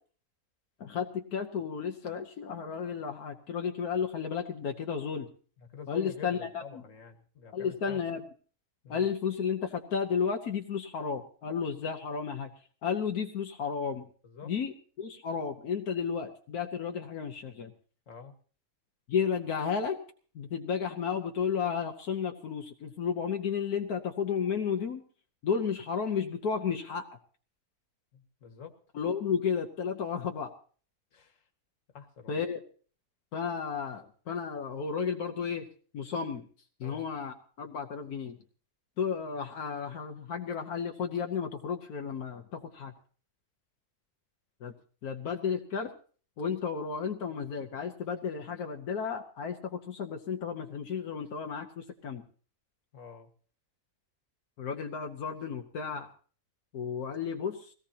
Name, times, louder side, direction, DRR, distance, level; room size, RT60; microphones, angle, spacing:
voice 1, 0.8-5.3 5.9-6.8 7.5-8.2 8.9-12.5 12.8-14.1 14.4-17.7 19.1-20.0 20.3-25.0 25.4-27.1 28.9-30.5 32.3-32.6 33.3-35.7 35.9-36.4 36.8-38.4 39.0-42.9 44.6-44.7 45.0-45.9 46.4-52.2 54.6-56.1 56.7-57.7, left 6 dB, 85° left, 3 dB, 1.6 m, -33 dB
voice 2, 5.7-8.0 8.8-9.1 14.2-14.5 18.1-18.3 28.1-28.8 31.1-31.4 31.9-32.4 36.8-37.1 52.9-53.3, left 7 dB, 60° left, 4 dB, 1.9 m, -46 dB
22.0 x 17.5 x 2.8 m, 0.41 s
omnidirectional pair, 1.6 m